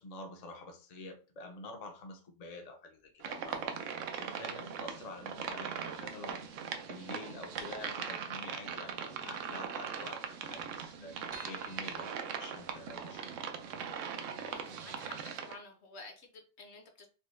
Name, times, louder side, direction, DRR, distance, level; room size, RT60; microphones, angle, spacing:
voice 1, 0.0-6.6 6.9-11.2 11.4-13.3, left 2 dB, 45° left, 0.6 m, -48 dB
sound 1, 3.2-15.6, right 7 dB, 90° right, 1.0 m, -40 dB
sound 2, 3.5-4.0 4.3-4.4 5.3-6.0 6.3-6.5 6.8-6.9 7.2-7.3 7.6-8.9 9.3-9.4 9.6-9.7 9.9-10.0 10.5-13.1 13.6-13.7 14.1-14.2, right 2 dB, 40° right, 0.8 m, -56 dB
voice 2, 14.4-17.1, left 3 dB, 65° left, 1.0 m, -51 dB
4.5 x 2.1 x 3.1 m
omnidirectional pair, 1.3 m